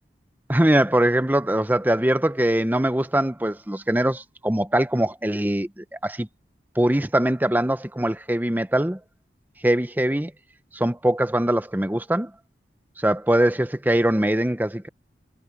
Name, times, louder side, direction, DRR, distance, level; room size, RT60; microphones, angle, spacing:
voice 1, 0.5-6.3 6.8-9.0 9.6-10.3 10.7-12.3 13.0-14.9, right 1 dB, 10° right, 0.7 m, -22 dB
head